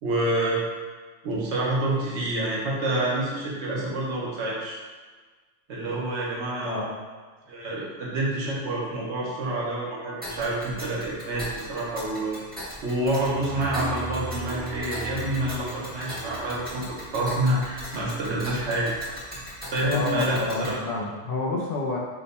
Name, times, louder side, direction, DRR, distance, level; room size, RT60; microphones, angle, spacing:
voice 1, 0.0-0.6 1.2-4.8 5.7-6.8 7.5-12.3 12.8-18.9 19.7-20.8, right 1 dB, 70° right, -5 dB, 1.0 m, -27 dB
Tick, 10.2-20.8, equal, 10° right, 0.8 m, -40 dB
sound 1, 13.1-17.4, right 3 dB, 50° right, 0.7 m, -37 dB
voice 2, 19.9-22.0, left 3 dB, 60° left, -2 dB, 0.7 m, -29 dB
2.9 x 2.1 x 4.0 m, 1.4 s
omnidirectional pair, 1.2 m